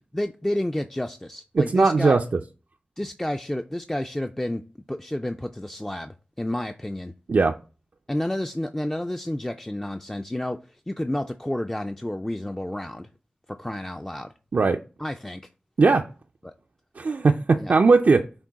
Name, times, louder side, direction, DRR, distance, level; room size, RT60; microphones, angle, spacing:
voice 1, 0.1-2.2 3.0-4.6 4.9-7.1 8.1-10.6 10.9-13.1 13.6-14.3 15.0-15.4 16.4-16.5 17.5-17.7, left 1 dB, 15° left, 0.3 m, -30 dB
voice 2, 1.6-2.2 7.3-7.5 14.5-14.8 15.8-16.1 17.0-18.3, right 4 dB, 60° right, 0.3 m, -19 dB
6.0 x 2.2 x 3.9 m
cardioid pair, 40°, 3 cm